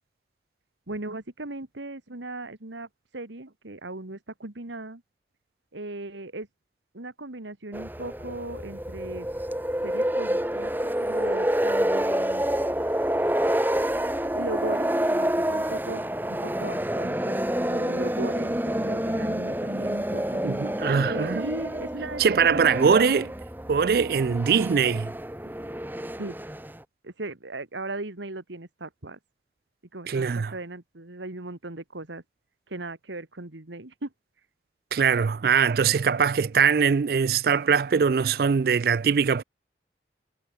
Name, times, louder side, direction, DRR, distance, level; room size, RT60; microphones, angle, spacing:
voice 1, 0.9-2.9 3.1-5.0 5.7-6.5 6.9-9.3 9.8-12.5 14.3-20.4 21.0-22.2 22.5-22.9 26.2-26.4 27.0-29.2 29.9-32.2 32.7-34.1, right 2 dB, 85° right, 2.0 m, -37 dB
sound 1, 7.7-26.8, right 1 dB, 10° right, 1.5 m, -28 dB
voice 2, 20.4-21.4 22.2-23.3 23.7-25.1 30.1-30.5 34.9-39.4, right 6 dB, 55° right, 0.4 m, -22 dB
head